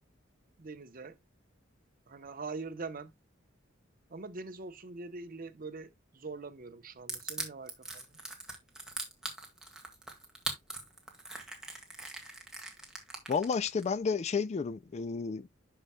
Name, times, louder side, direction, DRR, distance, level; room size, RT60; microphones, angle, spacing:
voice 1, 0.6-1.2 2.1-3.1 4.1-8.1, right 3 dB, 45° right, 0.8 m, -43 dB
Crushing, 7.1-13.8, right 2 dB, 5° right, 1.9 m, -40 dB
voice 2, 13.3-15.5, left 5 dB, 35° left, 0.3 m, -31 dB
11.5 x 5.5 x 2.2 m
head